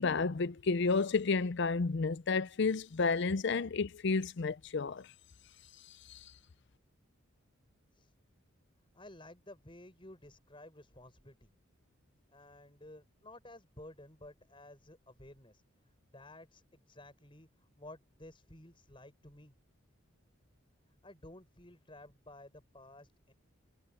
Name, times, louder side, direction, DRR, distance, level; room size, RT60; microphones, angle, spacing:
voice 1, 0.0-5.1 6.1-6.2, left 4 dB, 55° left, 0.5 m, -31 dB
voice 2, 8.9-11.5 12.3-19.5 20.8-23.3, left 1 dB, 25° left, 6.5 m, -54 dB
head